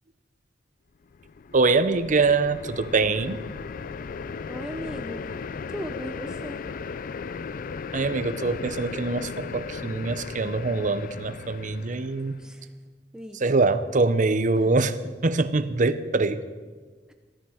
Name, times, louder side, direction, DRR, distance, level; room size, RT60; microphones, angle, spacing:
sound 1, 1.1-12.5, left 5 dB, 50° left, 0.4 m, -36 dB
voice 1, 1.5-3.4 7.9-12.4 13.4-16.4, right 3 dB, 45° right, 13 dB, 0.7 m, -24 dB
voice 2, 4.5-5.3 5.7-6.6 12.4-12.7 13.1-13.5 14.6-14.7, equal, 5° right, 5 dB, 0.7 m, -37 dB
16.0 x 13.0 x 5.0 m, 1.4 s
head